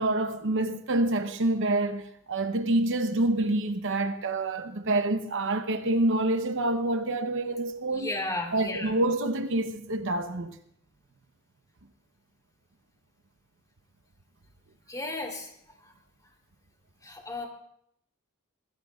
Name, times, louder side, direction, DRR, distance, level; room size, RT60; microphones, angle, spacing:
voice 1, 0.0-8.1 8.5-10.6, right 2 dB, 60° right, 0.8 m, -27 dB
voice 2, 7.9-8.9 14.9-15.5 15.8-15.9 17.0-17.5, left 2 dB, 15° left, 3.2 m, -34 dB
26.0 x 19.5 x 2.4 m
head